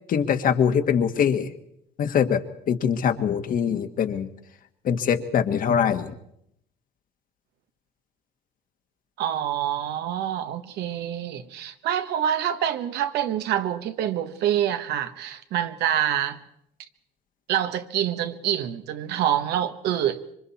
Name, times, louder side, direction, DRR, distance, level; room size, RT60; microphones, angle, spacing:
voice 1, 0.1-1.5 2.0-4.3 4.8-6.1, left 7 dB, 55° left, 8 dB, 1.6 m, -23 dB
voice 2, 9.2-16.4 17.5-20.2, right 10 dB, 80° right, 9 dB, 1.4 m, -26 dB
26.5 x 24.0 x 4.2 m, 0.76 s
cardioid pair, 110°, 17 cm